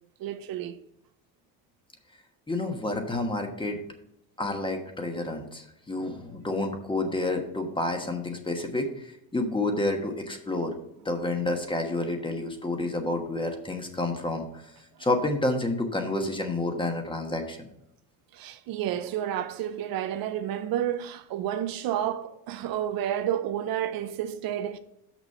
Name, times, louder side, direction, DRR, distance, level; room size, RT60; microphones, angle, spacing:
voice 1, 0.2-0.8 11.1-11.2 18.3-24.8, right 11 dB, 65° right, 0.6 m, -30 dB
voice 2, 2.5-3.8 4.4-10.8 11.0-14.7 15.0-17.7, left 2 dB, 15° left, 1.2 m, -29 dB
6.1 x 6.1 x 5.4 m
cardioid pair, 110°, 39 cm